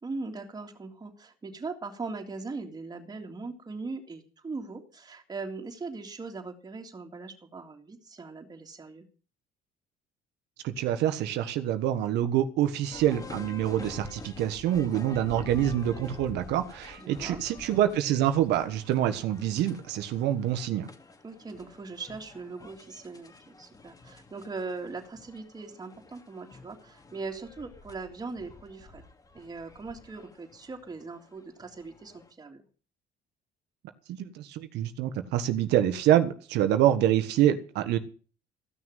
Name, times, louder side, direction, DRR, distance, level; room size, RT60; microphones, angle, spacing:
voice 1, 0.0-9.0 17.0-17.4 21.2-23.3 23.6-29.0 29.3-32.6, right 3 dB, 25° right, 2 dB, 3.4 m, -40 dB
voice 2, 10.6-20.9 34.1-38.0, right 11 dB, 85° right, 8 dB, 1.5 m, -26 dB
sound 1, 12.9-32.3, left 3 dB, 20° left, 2.5 m, -48 dB
15.5 x 6.4 x 9.2 m, 0.39 s
cardioid pair, 110°, 17 cm